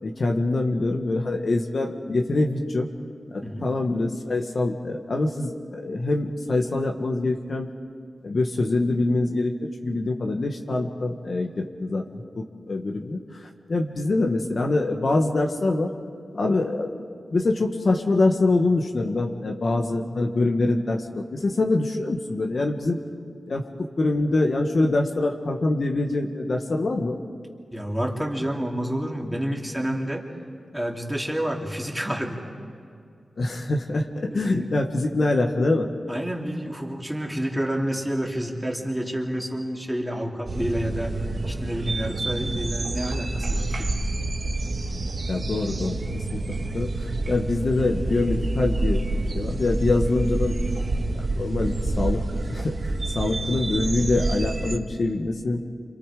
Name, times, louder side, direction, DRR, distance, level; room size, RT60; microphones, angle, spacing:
voice 1, 0.0-2.9 3.3-7.7 8.2-12.0 12.3-15.9 16.3-17.0 17.3-23.0 23.5-23.7 24.0-27.2 33.4-35.9 45.3-46.4 46.7-49.0 49.3-52.2 52.5-55.6, left 2 dB, 55° left, 2 dB, 1.7 m, -24 dB
voice 2, 27.7-30.2 30.7-32.4 34.3-34.7 36.1-41.1 41.5-43.9, equal, 5° right, 0 dB, 3.0 m, -29 dB
sound 1, 40.5-54.8, right 2 dB, 50° right, 1.6 m, -28 dB
29.5 x 26.5 x 5.1 m, 2.3 s
wide cardioid pair, 85°, 0 cm